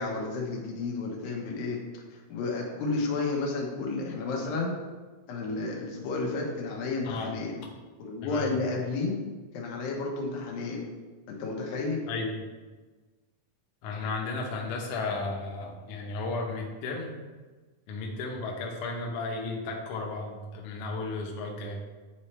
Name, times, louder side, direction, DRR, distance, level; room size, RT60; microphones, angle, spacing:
voice 1, 0.0-4.7 5.3-7.6 8.0-9.2 9.5-10.8 11.3-12.1, left 3 dB, 90° left, 0 dB, 2.8 m, -32 dB
voice 2, 12.1-12.4 13.8-17.1 17.9-21.8, left 3 dB, 70° left, 0 dB, 2.1 m, -34 dB
9.8 x 4.2 x 3.2 m, 1.3 s
omnidirectional pair, 3.9 m